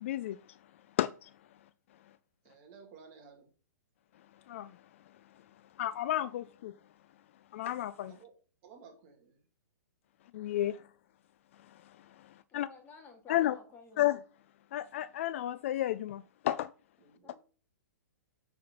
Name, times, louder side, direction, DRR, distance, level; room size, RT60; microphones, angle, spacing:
voice 1, 0.0-0.4 1.0-1.3 4.5-4.7 5.8-6.7 7.5-8.1 10.3-10.8 12.5-12.7 13.3-13.6 14.0-14.2 14.7-16.7, left 13 dB, 45° left, 0.4 m, -32 dB
voice 2, 2.4-3.5 8.1-8.3 8.6-9.4 17.0-17.4, right 5 dB, 35° right, 2.4 m, -55 dB
voice 3, 12.5-14.1 17.2-17.4, left 3 dB, 20° left, 1.8 m, -53 dB
8.7 x 4.2 x 5.4 m
hypercardioid pair, 155°, 10 cm